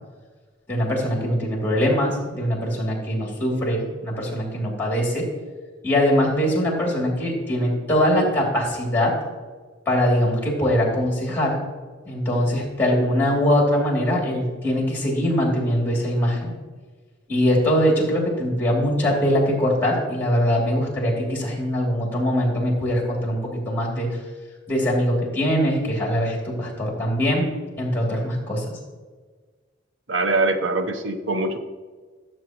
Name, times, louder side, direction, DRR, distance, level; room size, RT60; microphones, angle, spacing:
voice 1, 0.7-5.3 5.8-9.1 9.9-11.6 12.1-16.5 17.3-24.2 24.7-27.4 27.8-28.8, equal, 10° left, -2 dB, 2.8 m, -22 dB
voice 2, 30.1-31.6, right 2 dB, 75° right, 7 dB, 0.9 m, -23 dB
13.5 x 7.6 x 3.0 m, 1.4 s
head